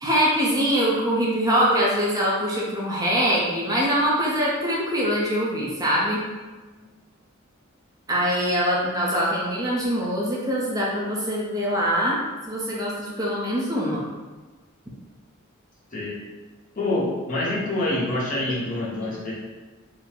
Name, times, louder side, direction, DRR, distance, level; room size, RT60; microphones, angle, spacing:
voice 1, 0.0-6.2 8.1-12.2 12.5-14.0 18.5-18.6 19.0-19.1, equal, 15° right, -5 dB, 0.6 m, -23 dB
voice 2, 16.7-19.3, left 1 dB, 40° left, -5 dB, 0.9 m, -26 dB
3.8 x 2.1 x 4.4 m, 1.3 s
head